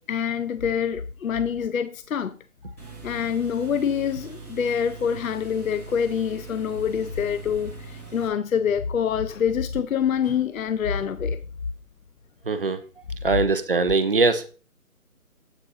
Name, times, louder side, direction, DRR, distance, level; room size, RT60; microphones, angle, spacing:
voice 1, 0.1-2.4 3.0-11.4, left 7 dB, 65° left, 0.6 m, -26 dB
sound 1, 2.8-8.3, right 4 dB, 10° left, 0.8 m, -41 dB
voice 2, 12.5-12.8 13.2-14.5, right 3 dB, 40° right, 0.7 m, -21 dB
8.2 x 3.5 x 5.4 m
figure-of-eight pair, 160°, 43 cm